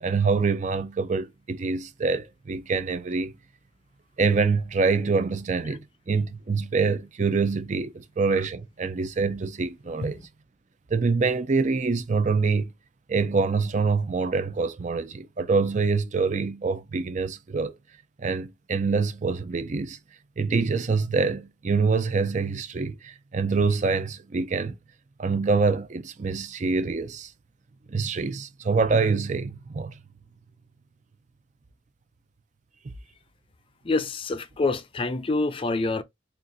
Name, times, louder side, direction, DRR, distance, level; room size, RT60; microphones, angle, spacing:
voice 1, 0.0-3.3 4.2-10.3 10.9-12.7 13.1-17.7 18.2-20.0 20.4-24.8 25.2-27.3 27.9-30.0, right 4 dB, 40° right, 0.5 m, -25 dB
voice 2, 33.8-36.0, left 3 dB, 30° left, 0.4 m, -26 dB
6.8 x 2.4 x 2.6 m
head